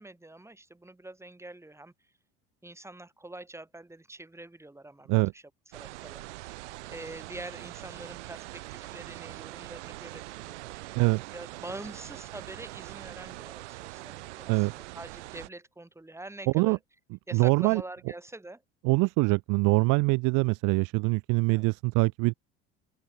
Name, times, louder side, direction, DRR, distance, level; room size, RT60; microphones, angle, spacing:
voice 1, 0.0-1.9 2.6-5.4 5.7-11.0 11.3-16.8 17.3-18.6 21.5-21.7, right 2 dB, 10° right, 2.3 m, -45 dB
sound 1, 5.7-15.5, right 20 dB, 80° right, 3.8 m, -43 dB
voice 2, 17.3-17.8 18.8-22.3, right 27 dB, 60° right, 0.7 m, -24 dB
open air
hypercardioid pair, 75°, 35 cm